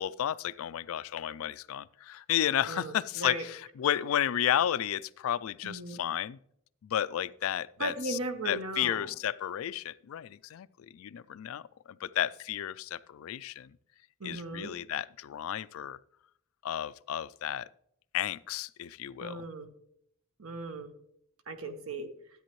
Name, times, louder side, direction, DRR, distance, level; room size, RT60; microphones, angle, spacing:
voice 1, 0.0-6.4 6.8-8.2 8.5-11.6 11.9-13.8 14.2-16.0 16.6-17.7 18.1-19.4, left 10 dB, 65° left, 0.3 m, -32 dB
voice 2, 2.7-3.4 5.6-6.0 7.8-9.1 14.2-14.7 19.2-19.7 20.4-20.9 21.5-22.1, right 2 dB, 70° right, 1.2 m, -37 dB
13.0 x 8.6 x 3.1 m
head